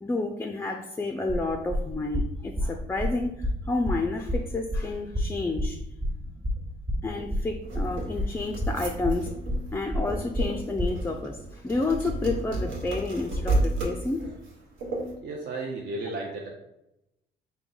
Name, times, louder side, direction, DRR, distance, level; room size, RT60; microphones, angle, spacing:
voice 1, 0.0-5.8 7.0-9.3 9.7-14.2, left 3 dB, 10° left, 4 dB, 0.3 m, -30 dB
sound 1, 1.3-11.0, equal, 25° right, 0.8 m, -29 dB
sound 2, 7.6-15.1, right 1 dB, 85° right, 1.1 m, -32 dB
voice 2, 15.2-16.5, right 2 dB, 60° right, -1 dB, 0.6 m, -33 dB
3.6 x 2.7 x 3.8 m, 0.87 s
cardioid pair, 90°, 20 cm